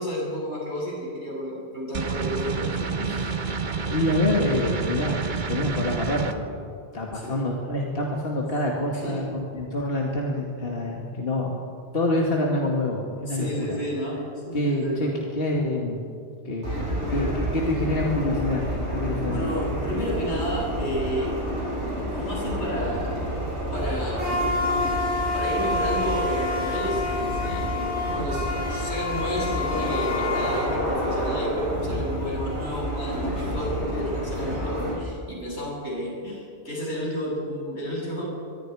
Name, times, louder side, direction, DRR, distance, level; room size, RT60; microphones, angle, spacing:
voice 1, 0.0-3.7 7.1-7.3 8.9-9.4 13.2-15.1 19.3-21.3 22.1-23.2 23.7-24.5 25.3-38.2, equal, 90° left, -4 dB, 7.6 m, -31 dB
sound 1, 1.9-6.3, right 5 dB, 45° right, 1.2 m, -29 dB
voice 2, 3.9-6.6 6.9-11.6 11.9-13.8 14.5-16.1 16.4-16.7 17.1-19.5, left 1 dB, 60° left, -1 dB, 2.2 m, -26 dB
sound 2, 16.6-34.9, left 1 dB, 90° right, 6.7 m, -28 dB
24.5 x 22.5 x 4.8 m, 2.4 s
omnidirectional pair, 1.1 m